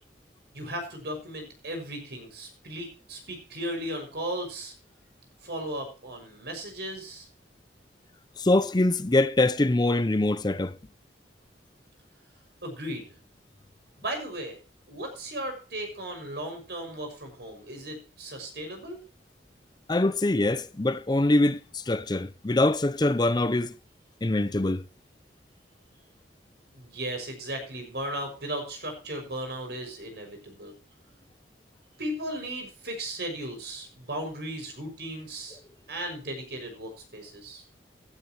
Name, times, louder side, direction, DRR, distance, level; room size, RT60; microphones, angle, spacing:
voice 1, 0.5-4.7 5.4-7.3 12.6-13.2 14.0-14.6 14.9-19.0 26.7-30.7 32.0-35.6 35.9-37.6, right 1 dB, 65° right, 6.1 m, -36 dB
voice 2, 8.4-10.7 19.9-23.7 24.2-24.8, left 2 dB, 25° left, 0.6 m, -24 dB
15.5 x 13.0 x 3.0 m
head